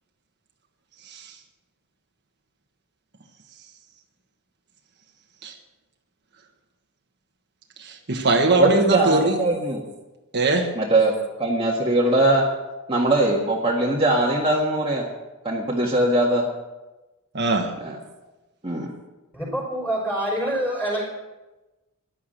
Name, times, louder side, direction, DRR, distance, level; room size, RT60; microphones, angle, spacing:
voice 1, 1.0-1.3 5.4-5.6 7.8-9.3 10.3-10.7 17.3-17.7, right 3 dB, 50° right, 2 dB, 1.4 m, -22 dB
voice 2, 8.6-9.8 10.7-11.1 11.4-12.4 12.9-15.0 15.4-16.4 17.8-18.0 18.6-18.9, right 2 dB, 25° right, -3 dB, 1.7 m, -21 dB
voice 3, 19.3-21.0, right 1 dB, 10° left, -2 dB, 5.6 m, -26 dB
15.0 x 11.0 x 6.6 m, 1.1 s
head